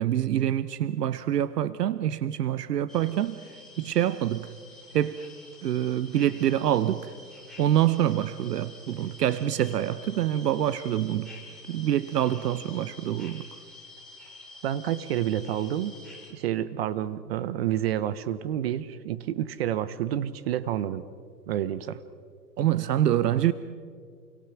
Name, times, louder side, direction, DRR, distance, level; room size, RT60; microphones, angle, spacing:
voice 1, 0.0-3.4 3.8-4.5 4.9-5.3 5.6-7.1 7.6-11.3 11.7-13.5 22.6-23.5, right 11 dB, 70° right, 0.9 m, -26 dB
sound 1, 2.9-16.3, left 3 dB, ahead, 4.8 m, -48 dB
voice 2, 14.6-16.0 16.3-21.0 21.5-22.0, right 11 dB, 40° right, 0.8 m, -29 dB
29.0 x 23.0 x 6.0 m
hypercardioid pair, 150°, 49 cm